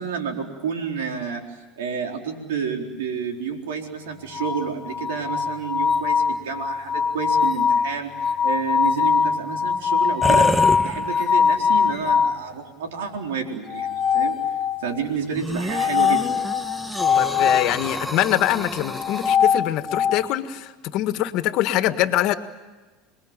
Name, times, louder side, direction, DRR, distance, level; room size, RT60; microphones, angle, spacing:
voice 1, 0.0-1.4 1.8-8.1 8.4-14.4 14.8-16.4, right 6 dB, 85° right, 3 dB, 4.1 m, -30 dB
sound 1, 4.3-12.4 13.7-15.0 15.7-17.7 18.9-20.3, left 6 dB, 30° left, 1.3 m, -22 dB
sound 2, 10.2-11.5 12.1-12.2 15.4-19.4, right 1 dB, 5° right, 1.4 m, -29 dB
voice 2, 17.2-22.3, left 14 dB, 60° left, 10 dB, 1.7 m, -23 dB
27.5 x 21.0 x 9.0 m, 1.2 s
hypercardioid pair, 95°, 0 cm